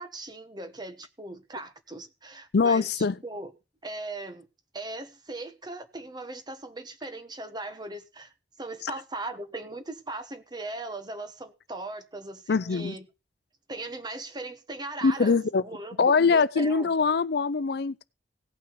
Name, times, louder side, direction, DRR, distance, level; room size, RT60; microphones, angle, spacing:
voice 1, 0.0-3.5 3.8-4.5 4.7-8.3 8.6-13.1 13.7-16.9, right 2 dB, 25° right, 1.2 m, -39 dB
voice 2, 2.5-3.1 12.5-12.9 15.0-15.6 16.0-18.0, left 5 dB, 65° left, 0.5 m, -23 dB
17.5 x 5.8 x 5.2 m
head